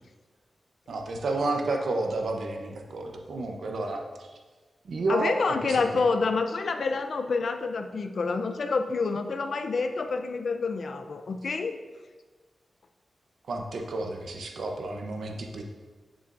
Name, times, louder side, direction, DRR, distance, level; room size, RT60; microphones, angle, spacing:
voice 1, 0.9-4.3 4.8-6.0 13.5-15.6, right 2 dB, 70° right, 2 dB, 0.8 m, -31 dB
voice 2, 5.1-11.7, left 4 dB, 55° left, 7 dB, 0.5 m, -28 dB
10.0 x 7.0 x 2.6 m, 1.3 s
wide cardioid pair, 160°, 0 cm